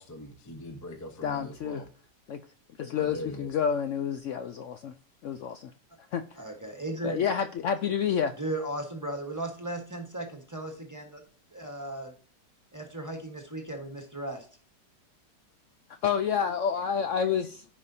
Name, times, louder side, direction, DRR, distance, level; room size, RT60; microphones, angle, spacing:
voice 1, 0.0-1.9 3.0-3.6, equal, 15° left, 0.8 m, -41 dB
voice 2, 1.2-1.8 2.3-2.4 2.8-4.9 5.2-5.7 6.1-6.4 7.0-8.3 16.0-17.6, left 7 dB, 75° left, 0.6 m, -29 dB
voice 3, 6.4-7.2 8.4-11.2 11.5-12.1 12.7-14.5, right 1 dB, 10° right, 1.1 m, -36 dB
14.5 x 5.1 x 2.7 m
omnidirectional pair, 1.8 m